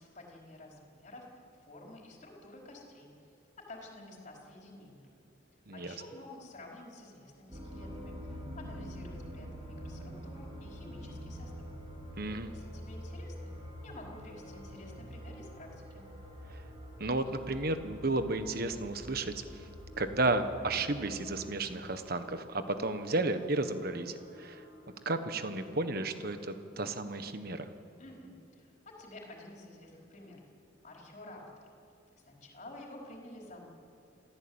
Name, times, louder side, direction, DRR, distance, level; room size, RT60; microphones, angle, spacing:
voice 1, 0.0-5.1 5.7-11.7 12.5-16.1 28.0-30.5 30.8-31.6 32.2-33.6, left 1 dB, 40° left, -1 dB, 4.7 m, -50 dB
sound 1, 7.5-26.4, equal, 25° right, 3.6 m, -47 dB
voice 2, 12.2-12.5 17.0-19.4 20.0-24.6 25.0-27.7, right 2 dB, 50° right, 9 dB, 1.3 m, -33 dB
27.5 x 15.5 x 8.9 m, 2.5 s
head